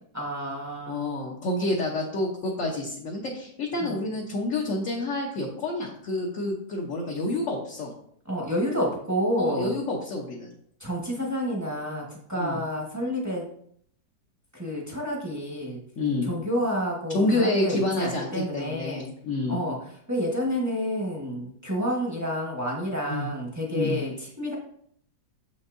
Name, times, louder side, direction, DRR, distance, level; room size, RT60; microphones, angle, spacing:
voice 1, 0.1-1.1 3.8-4.0 8.2-9.8 10.8-13.5 14.5-15.8 16.2-19.1 19.5-19.8 20.1-24.5, equal, 10° right, -2 dB, 0.9 m, -29 dB
voice 2, 0.9-7.9 9.4-10.5 12.4-12.6 16.0-16.3 17.1-19.6 23.1-23.3 23.7-24.0, left 2 dB, 55° left, -2 dB, 1.0 m, -28 dB
6.9 x 5.4 x 2.6 m, 0.65 s
omnidirectional pair, 2.1 m